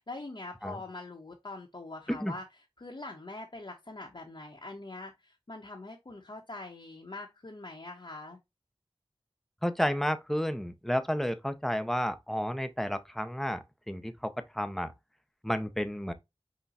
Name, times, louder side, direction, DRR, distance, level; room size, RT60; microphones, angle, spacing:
voice 1, 0.0-8.4, left 2 dB, 50° left, 0.8 m, -43 dB
voice 2, 9.6-13.6 13.9-14.9 15.4-16.1, equal, 5° left, 0.6 m, -31 dB
5.7 x 2.1 x 4.0 m
wide cardioid pair, 45°, 10 cm